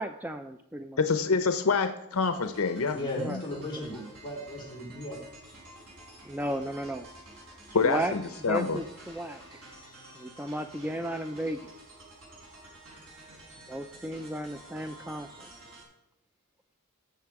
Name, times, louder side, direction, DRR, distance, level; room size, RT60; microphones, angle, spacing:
voice 1, 0.0-1.0 3.2-3.4 6.3-7.1 7.8-8.1 8.4-9.4 10.2-11.7 13.7-15.5, right 1 dB, 10° right, 8 dB, 0.4 m, -34 dB
voice 2, 1.0-3.0 3.3-3.4 7.7-8.8, left 4 dB, 75° left, 9 dB, 0.7 m, -26 dB
sound 1, 2.1-15.8, right 1 dB, 70° right, 4.6 m, -50 dB
voice 3, 2.9-5.2, left 1 dB, 20° left, -3 dB, 3.4 m, -36 dB
17.0 x 7.0 x 4.8 m, 0.87 s
head